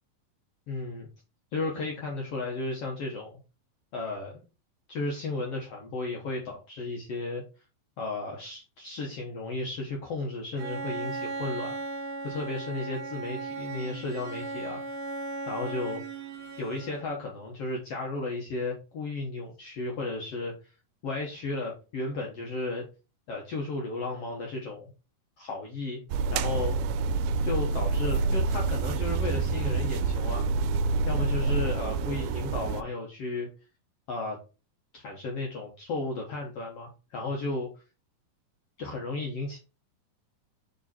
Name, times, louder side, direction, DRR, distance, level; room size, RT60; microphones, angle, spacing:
voice 1, 0.7-1.1 1.5-3.4 3.9-4.4 4.9-7.4 8.0-11.7 12.2-15.0 15.5-16.0 16.6-20.5 21.0-22.9 23.3-24.9 25.4-26.0 26.3-26.7 27.4-30.5 31.1-33.5 34.1-34.4 34.9-37.8 38.8-39.6, left 2 dB, 60° left, -1 dB, 1.6 m, -34 dB
Bowed string instrument, 10.6-17.3, right 3 dB, 60° right, 2.1 m, -37 dB
sound 1, 26.1-32.8, right 3 dB, 90° right, 2.4 m, -27 dB
6.5 x 4.1 x 4.2 m, 0.32 s
omnidirectional pair, 4.2 m